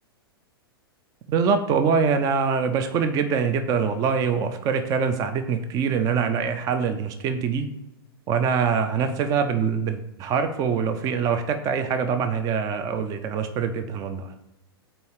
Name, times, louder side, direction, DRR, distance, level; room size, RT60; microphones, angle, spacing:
voice 1, 1.3-7.7 8.3-14.3, right 6 dB, 30° right, 8 dB, 0.5 m, -24 dB
5.3 x 4.3 x 4.8 m, 0.97 s
figure-of-eight pair, 100°, 13 cm